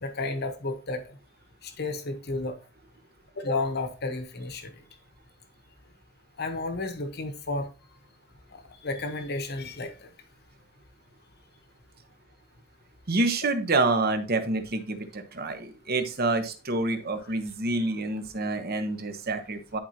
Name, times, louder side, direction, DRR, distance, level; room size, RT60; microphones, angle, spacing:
voice 1, 0.0-1.1 1.6-2.6 3.4-4.7 6.4-7.7 8.8-10.1, left 2 dB, 55° left, 1.1 m, -32 dB
voice 2, 13.1-19.8, right 2 dB, 50° right, 1.0 m, -27 dB
10.5 x 4.5 x 2.9 m
head